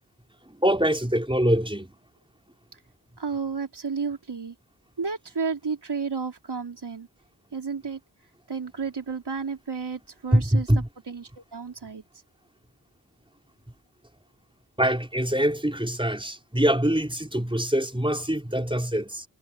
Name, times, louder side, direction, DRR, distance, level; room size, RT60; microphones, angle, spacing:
voice 1, 0.5-1.9 10.3-10.9 14.8-19.2, right 1 dB, 15° right, 4.8 m, -24 dB
voice 2, 3.2-4.5 5.0-7.1 7.5-8.0 8.5-10.7 11.1-12.0, right 5 dB, 75° right, 4.2 m, -32 dB
cardioid pair, 40°, 40 cm